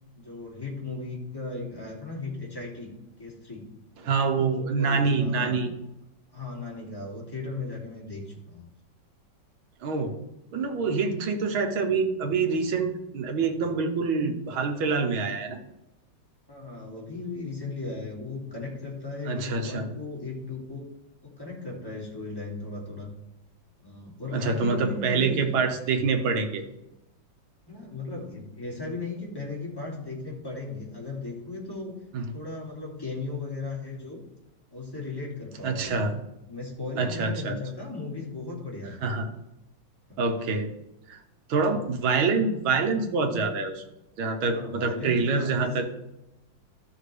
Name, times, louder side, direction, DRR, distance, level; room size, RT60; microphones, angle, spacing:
voice 1, 0.2-2.9 3.2-3.7 4.3-5.7 6.3-8.7 16.5-20.9 21.2-23.1 23.8-25.5 26.0-26.4 27.7-32.0 32.3-34.2 34.7-36.0 36.5-39.0 40.1-40.2 44.4-45.7, left 3 dB, 10° left, -4 dB, 2.4 m, -36 dB
voice 2, 4.0-5.7 9.8-10.2 10.5-15.6 19.3-19.9 24.3-26.6 32.1-32.3 35.6-36.1 37.0-37.6 39.0-39.3 40.2-40.7 41.1-41.2 41.5-43.8 44.2-45.9, right 4 dB, 85° right, 5 dB, 1.8 m, -26 dB
13.0 x 6.0 x 3.3 m, 0.93 s
omnidirectional pair, 2.2 m